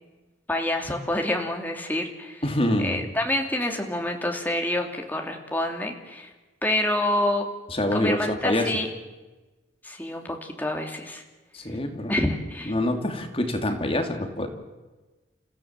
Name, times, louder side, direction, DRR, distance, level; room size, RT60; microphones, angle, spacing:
voice 1, 0.5-2.4 2.8-6.3 6.6-7.5 7.9-8.9 9.8-11.2 12.1-12.7, left 1 dB, 10° left, 2 dB, 2.9 m, -27 dB
voice 2, 2.4-3.1 7.7-8.8 11.5-12.2 12.7-14.5, left 1 dB, 30° left, 4 dB, 2.7 m, -26 dB
29.5 x 15.5 x 7.5 m, 1.2 s
head